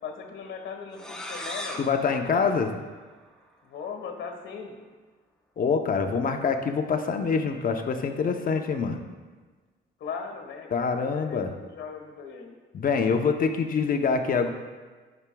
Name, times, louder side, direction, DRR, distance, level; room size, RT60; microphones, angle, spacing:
voice 1, 0.0-1.8 2.2-2.8 3.6-4.8 10.0-12.5, left 6 dB, 75° left, 3 dB, 1.3 m, -39 dB
sound 1, 0.9-3.5, equal, 5° left, 0.8 m, -40 dB
voice 2, 1.8-2.7 5.6-9.0 10.7-11.5 12.7-14.5, left 5 dB, 45° left, 5 dB, 0.8 m, -25 dB
11.0 x 6.0 x 2.3 m, 1.4 s
cardioid pair, 90°, 20 cm